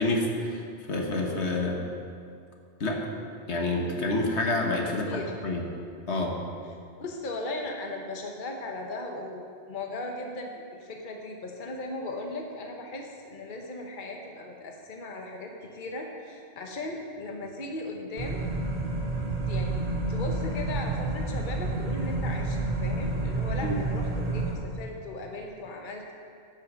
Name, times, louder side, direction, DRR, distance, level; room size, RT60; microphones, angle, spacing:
voice 1, 0.0-1.8 2.8-3.1 3.5-5.7 6.1-6.4 23.6-23.8, left 2 dB, 75° left, 1 dB, 1.6 m, -28 dB
voice 2, 7.0-18.4 19.5-26.1, left 2 dB, 50° left, 2 dB, 1.2 m, -37 dB
sound 1, 18.2-24.5, right 2 dB, 35° right, 2.1 m, -29 dB
14.0 x 6.4 x 6.2 m, 2.3 s
omnidirectional pair, 1.1 m